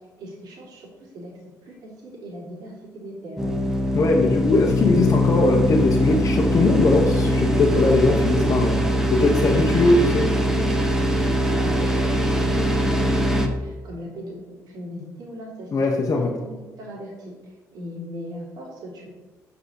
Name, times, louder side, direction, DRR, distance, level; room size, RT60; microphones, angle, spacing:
voice 1, 0.2-1.3 1.6-3.6 11.3-15.7 16.1-19.1, equal, 75° right, -4 dB, 2.8 m, -38 dB
sound 1, 3.4-13.5, equal, 5° right, 1.2 m, -21 dB
voice 2, 3.9-10.3 15.7-16.3, left 3 dB, 50° left, -2 dB, 1.1 m, -20 dB
5.7 x 5.0 x 6.5 m, 1.2 s
cardioid pair, 80°, 7 cm